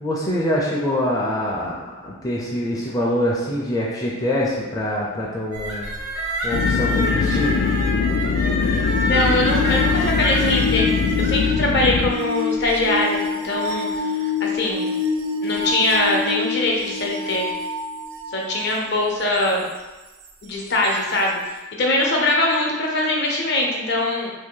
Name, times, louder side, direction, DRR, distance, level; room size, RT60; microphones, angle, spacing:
voice 1, 0.0-1.8 2.0-5.9 6.4-7.6, left 1 dB, 15° left, -5 dB, 0.4 m, -24 dB
sound 1, 5.5-12.2, equal, 90° right, 1.0 m, -27 dB
sound 2, 6.5-12.1, left 5 dB, 90° left, 0.3 m, -22 dB
sound 3, 8.8-18.5 20.8-20.9, left 4 dB, 70° right, 0.4 m, -27 dB
voice 2, 9.0-10.9 11.2-14.9 15.4-17.4 18.3-19.7 20.4-21.4 21.8-24.3, left 2 dB, 55° left, -1 dB, 0.6 m, -22 dB
2.9 x 2.7 x 3.7 m, 1.1 s
head